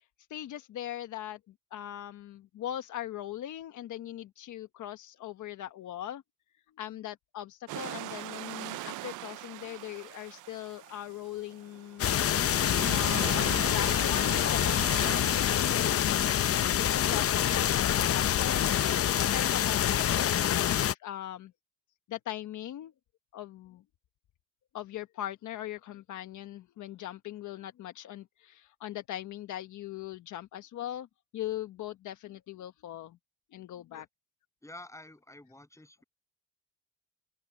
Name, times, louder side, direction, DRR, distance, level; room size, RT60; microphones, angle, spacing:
voice 1, 0.3-1.4 1.7-6.2 6.8-12.1 12.9-16.2 17.0-21.5 22.1-22.9 23.3-23.8 24.7-31.1 31.3-33.2 33.5-34.0, left 12 dB, 75° left, 1.4 m, -40 dB
sound 1, 7.7-16.8, right 17 dB, 80° right, 0.6 m, -41 dB
sound 2, 12.0-20.9, left 10 dB, 50° left, 0.7 m, -26 dB
voice 2, 34.6-36.0, left 1 dB, 10° left, 8.0 m, -49 dB
open air
cardioid pair, 90°, 30 cm